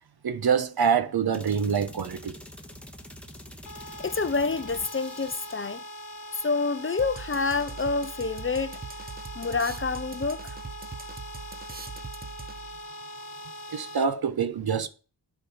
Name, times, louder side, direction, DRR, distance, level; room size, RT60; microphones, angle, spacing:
voice 1, 0.2-2.4 13.7-14.9, right 6 dB, 60° right, 1.1 m, -25 dB
Future Machinegun, 1.3-5.8, left 1 dB, 5° left, 1.6 m, -46 dB
sound 1, 3.7-14.0, equal, 50° left, 1.3 m, -42 dB
voice 2, 4.0-5.8 6.3-8.8 9.4-10.6, left 4 dB, 30° left, 0.7 m, -28 dB
sound 2, 7.0-12.8, right 4 dB, 20° right, 0.8 m, -41 dB
10.0 x 5.2 x 5.7 m
cardioid pair, 70°, 42 cm